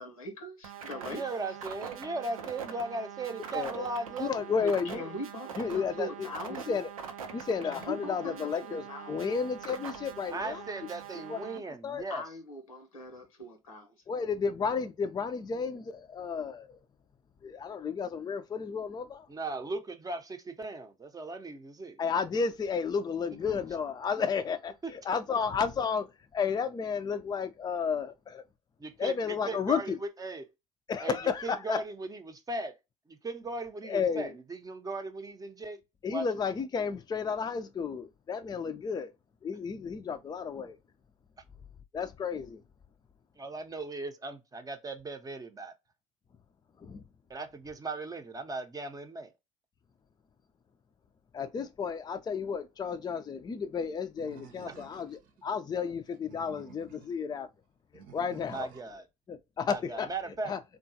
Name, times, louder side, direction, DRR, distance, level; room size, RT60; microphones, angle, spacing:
voice 1, 0.0-1.2 4.6-6.8 7.7-9.4 12.1-14.0, left 1 dB, 90° left, 0.9 m, -41 dB
sound 1, 0.6-11.6, right 7 dB, 85° right, 0.5 m, -43 dB
voice 2, 1.1-4.4 10.3-12.2 19.3-22.0 24.8-24.9 28.8-30.5 31.0-31.2 31.4-32.8 33.1-35.8 36.1-36.3 43.4-45.7 47.3-49.3 54.7-54.8 58.5-59.1 59.6-60.5, right 2 dB, 20° right, 0.7 m, -37 dB
voice 3, 3.5-3.9 4.2-5.1 5.6-6.3 6.7-6.9 7.3-10.6 11.3-11.4 11.8-12.0 14.1-16.8 17.4-19.3 22.0-26.1 26.3-28.4 29.0-30.0 30.9-31.8 33.8-34.3 36.0-39.1 39.4-40.8 41.9-42.6 46.8-47.0 51.3-57.5 58.1-58.7 59.3-60.1 60.4-60.6, left 6 dB, 25° left, 0.5 m, -32 dB
Animal, 54.2-55.3 56.1-57.2 57.9-59.0, right 7 dB, 60° right, 0.8 m, -53 dB
3.7 x 2.3 x 2.7 m
hypercardioid pair, 65°, 17 cm